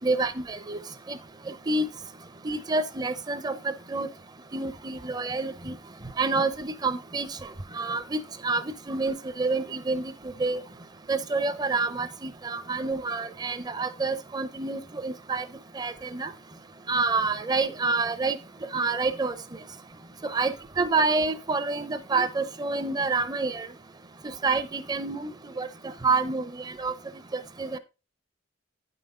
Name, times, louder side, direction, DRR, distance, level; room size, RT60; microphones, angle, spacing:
voice 1, 0.0-0.8 1.1-1.2 1.5-1.9 2.4-4.1 4.5-5.8 6.2-7.3 7.7-8.2 8.4-10.1 10.4-10.6 11.1-15.4 15.8-16.3 16.9-18.4 18.7-19.3 20.2-23.7 24.2-25.7 26.0-26.4 26.8-26.9 27.6-27.8, right 3 dB, 20° right, 0.6 m, -28 dB
9.7 x 5.6 x 3.8 m
head